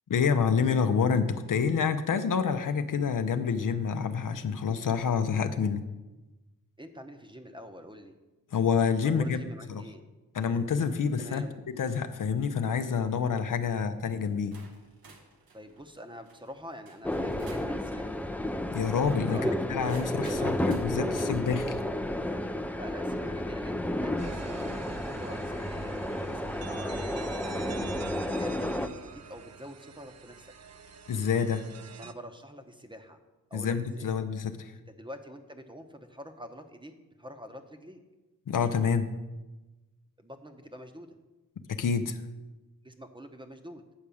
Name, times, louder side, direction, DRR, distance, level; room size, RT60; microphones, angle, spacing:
voice 1, 0.1-5.8 8.5-9.4 9.7-9.8 10.3-11.4 11.8-14.6 18.7-19.4 19.7-21.8 31.1-31.7 33.5-34.7 38.5-39.1 41.7-42.2, left 6 dB, 65° left, 9 dB, 0.6 m, -27 dB
voice 2, 6.8-8.2 9.0-10.0 11.2-11.6 13.6-13.9 15.5-18.2 19.2-19.5 20.2-20.6 22.7-27.9 28.3-30.5 32.0-33.2 33.5-34.1 34.9-36.9 37.2-38.0 40.2-41.2 42.8-43.8, equal, 15° right, 6 dB, 0.8 m, -46 dB
sound 1, 10.8-11.1 11.6-11.9 12.8-13.1 13.9-14.0 14.5-17.8 18.8-21.4 23.1-23.2 24.5-25.2, right 3 dB, 90° right, 1.2 m, -52 dB
sound 2, 17.0-28.9, left 1 dB, 5° left, 0.4 m, -32 dB
sound 3, 24.2-32.1, right 6 dB, 50° right, 0.5 m, -46 dB
8.9 x 4.8 x 7.0 m, 1.1 s
wide cardioid pair, 95°, 35 cm